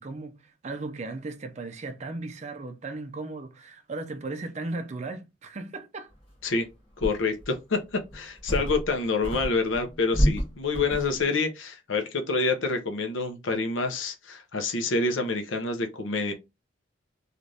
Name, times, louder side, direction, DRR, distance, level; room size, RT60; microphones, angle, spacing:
voice 1, 0.0-6.1 11.2-11.3, right 3 dB, 35° right, 0.4 m, -36 dB
sound 1, 6.4-6.5 7.0-7.6 8.1-9.0 9.2-11.2, equal, 30° left, 1.1 m, -28 dB
voice 2, 7.0-16.3, left 3 dB, 70° left, 0.7 m, -27 dB
3.3 x 2.4 x 2.6 m
head